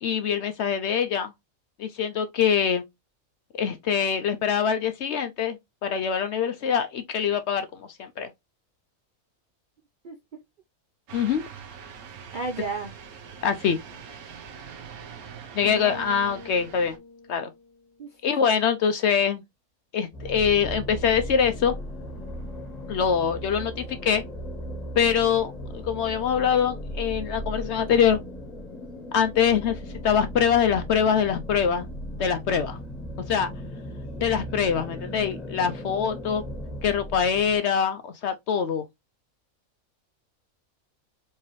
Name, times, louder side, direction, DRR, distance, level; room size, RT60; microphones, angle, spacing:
voice 1, 0.0-1.3 1.8-2.8 3.6-5.6 5.8-8.3 11.1-11.4 13.4-13.8 15.5-17.0 17.3-17.5 18.2-19.4 19.9-21.8 22.9-24.2 25.0-28.2 29.1-31.9 32.2-32.8 33.3-33.5 34.2-36.4 36.8-38.8, left 7 dB, 65° left, 0.7 m, -24 dB
sound 1, 11.1-17.0, right 6 dB, 80° right, 1.3 m, -43 dB
voice 2, 12.3-12.9 15.7-16.0 18.0-18.2, right 3 dB, 60° right, 0.5 m, -33 dB
Bass guitar, 15.6-18.0, left 3 dB, 85° left, 1.7 m, -42 dB
sound 2, 20.1-37.6, equal, 30° left, 1.0 m, -37 dB
4.6 x 2.8 x 3.0 m
omnidirectional pair, 1.5 m